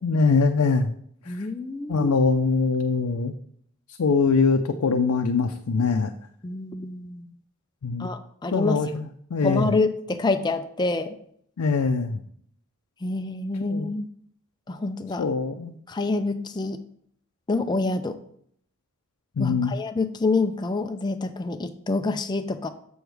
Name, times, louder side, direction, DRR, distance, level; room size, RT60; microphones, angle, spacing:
voice 1, 0.0-0.9 1.3-1.5 1.9-3.3 4.0-6.1 7.8-8.1 8.5-9.7 11.6-12.2 13.7-13.9 15.2-15.8 19.4-19.7, left 4 dB, 90° left, 5 dB, 0.5 m, -23 dB
voice 2, 1.3-2.1 6.4-7.3 8.0-8.8 9.4-11.2 13.0-14.1 14.7-15.2 15.9-16.8 17.5-18.2 19.4-22.7, left 3 dB, 20° left, 7 dB, 0.4 m, -27 dB
7.0 x 6.3 x 3.4 m, 0.66 s
head